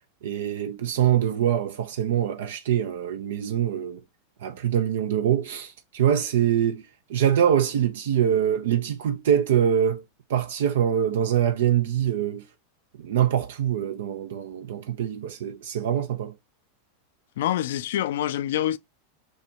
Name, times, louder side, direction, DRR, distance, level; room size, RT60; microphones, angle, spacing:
voice 1, 0.2-4.0 4.4-6.8 7.1-10.0 10.3-12.4 13.0-16.3, right 9 dB, 75° right, 0.6 m, -24 dB
voice 2, 17.4-18.8, left 12 dB, 75° left, 0.4 m, -26 dB
6.4 x 2.4 x 2.8 m
hypercardioid pair, 110°, 0 cm